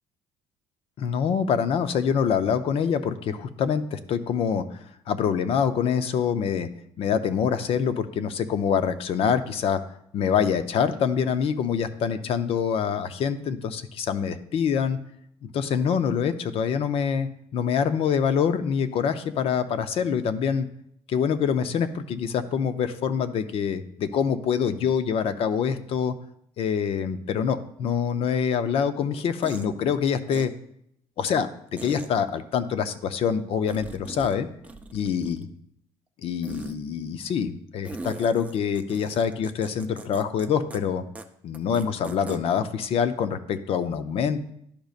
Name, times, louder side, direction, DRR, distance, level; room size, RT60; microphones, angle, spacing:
voice 1, 1.0-4.8 5.1-6.7 7.0-9.8 10.1-15.0 15.4-20.7 21.1-26.1 26.6-30.5 31.2-34.5 34.9-35.5 36.2-41.0 41.4-44.5, left 7 dB, 60° left, 11 dB, 0.6 m, -25 dB
sound 1, 29.4-29.7 30.3-30.4 31.8-32.1 33.7-34.4 34.6-35.5 36.4-36.8 37.8-40.5 40.7-40.8 41.2-41.3 41.5-42.4, right 3 dB, 15° right, 0.6 m, -39 dB
11.5 x 5.1 x 2.4 m, 0.72 s
cardioid pair, 95°, 11 cm